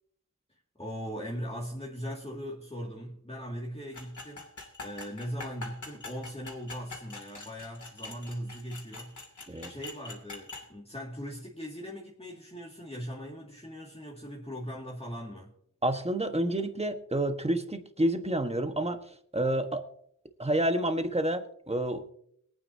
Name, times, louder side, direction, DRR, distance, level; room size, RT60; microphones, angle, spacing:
voice 1, 0.8-4.5 4.8-9.3 9.6-15.5, equal, 20° left, -3 dB, 2.1 m, -39 dB
sound 1, 3.9-10.7, left 3 dB, 60° left, 2.7 m, -44 dB
voice 2, 15.8-19.8 20.4-22.0, right 1 dB, 20° right, 7 dB, 1.3 m, -29 dB
23.0 x 9.2 x 2.7 m, 0.68 s
wide cardioid pair, 60°, 33 cm